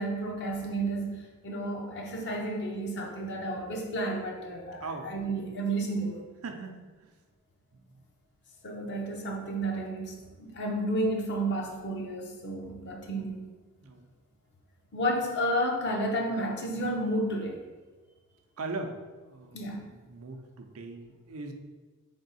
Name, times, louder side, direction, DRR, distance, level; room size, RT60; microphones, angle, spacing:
voice 1, 0.0-6.2 8.6-13.4 14.9-17.7 19.5-19.9, right 1 dB, 50° left, 1 dB, 0.7 m, -31 dB
voice 2, 6.4-6.8 13.8-14.0 18.6-21.5, right 3 dB, 70° right, 4 dB, 0.5 m, -39 dB
3.6 x 3.5 x 4.1 m, 1.3 s
head